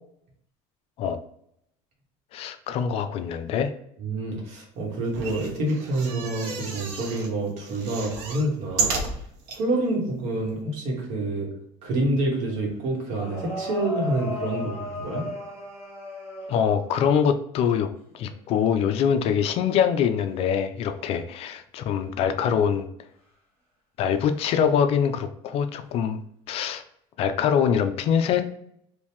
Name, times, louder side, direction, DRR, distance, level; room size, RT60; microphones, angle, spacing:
voice 1, 2.3-3.7 16.5-17.9 18.1-22.9 24.0-26.2 26.5-26.8 27.2-28.4, left 7 dB, 45° left, 9 dB, 0.4 m, -24 dB
voice 2, 4.0-9.0 9.5-11.5 11.8-15.3, right 2 dB, 60° right, -2 dB, 1.5 m, -27 dB
sound 1, 5.1-7.3 7.7-9.6 10.2-10.3 10.5-10.6, right 4 dB, 85° right, 0.9 m, -32 dB
sound 2, 12.5-12.6 13.1-16.9 18.2-18.6 20.2-20.4 24.2-24.5 25.8-25.9, left 2 dB, 20° right, 1.4 m, -35 dB
2.9 x 2.7 x 3.5 m, 0.72 s
cardioid pair, 135°, 14 cm